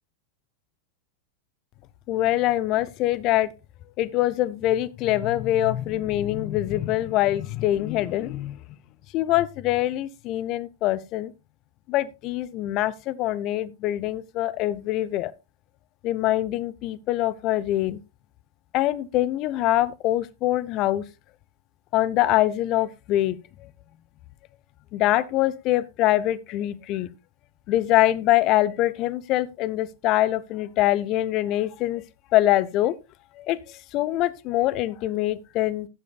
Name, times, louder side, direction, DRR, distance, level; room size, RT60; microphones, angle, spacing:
voice 1, 2.1-3.5 4.0-8.6 9.1-11.3 11.9-15.3 16.0-18.0 18.7-21.0 21.9-23.4 23.6-23.7 24.9-27.1 27.7-32.0 32.3-32.9 33.4-35.9, left 14 dB, 40° left, 0.7 m, -24 dB
15.0 x 8.5 x 2.3 m
figure-of-eight pair, 90°, 0 cm